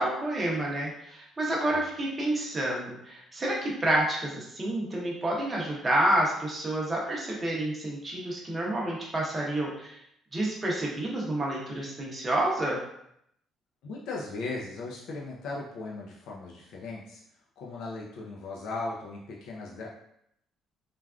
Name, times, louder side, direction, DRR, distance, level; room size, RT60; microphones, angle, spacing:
voice 1, 0.0-10.0 10.3-12.8, right 1 dB, 20° right, -3 dB, 0.7 m, -29 dB
voice 2, 13.8-17.2 17.6-19.9, left 3 dB, 70° left, -3 dB, 0.5 m, -37 dB
3.3 x 2.4 x 2.3 m, 0.74 s
cardioid pair, 145°, 0 cm